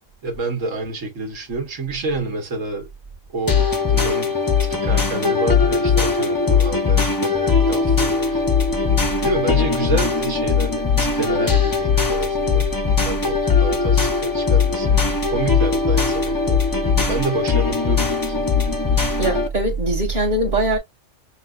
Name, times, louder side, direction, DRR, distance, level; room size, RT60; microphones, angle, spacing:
voice 1, 0.2-2.9 3.3-3.6 3.9-4.4 4.7-8.4 9.2-12.7 13.0-15.0 15.3-16.6 17.1-18.5, right 3 dB, 90° right, 1.9 m, -28 dB
sound 1, 3.5-19.5, left 5 dB, 20° left, 0.6 m, -19 dB
voice 2, 19.2-20.8, right 2 dB, 40° right, 1.6 m, -21 dB
6.0 x 2.5 x 2.3 m
omnidirectional pair, 1.3 m